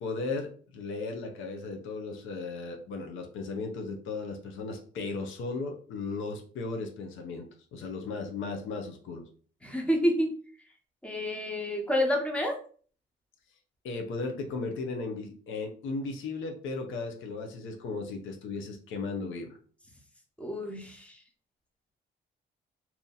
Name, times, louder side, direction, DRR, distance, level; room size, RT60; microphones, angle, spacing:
voice 1, 0.0-9.3 13.8-19.6, left 3 dB, 80° left, 4 dB, 0.8 m, -36 dB
voice 2, 9.6-10.3 11.0-12.6 20.4-21.2, equal, 5° left, 2 dB, 1.0 m, -28 dB
2.9 x 2.7 x 3.9 m, 0.43 s
cardioid pair, 90°, 20 cm